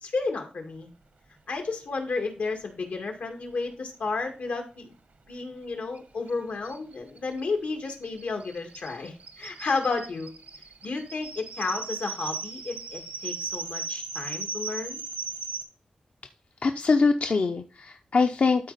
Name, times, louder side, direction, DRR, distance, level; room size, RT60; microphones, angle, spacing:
voice 1, 0.0-0.9 1.5-4.9 5.3-10.3 10.8-15.0, left 4 dB, 85° left, 3 dB, 2.0 m, -32 dB
sound 1, 5.9-6.0 6.3-6.4 6.6-15.6, right 4 dB, 80° right, 1.1 m, -37 dB
voice 2, 16.6-18.7, left 4 dB, 60° left, 6 dB, 0.6 m, -23 dB
12.5 x 4.4 x 4.0 m, 0.36 s
wide cardioid pair, 105°, 3 cm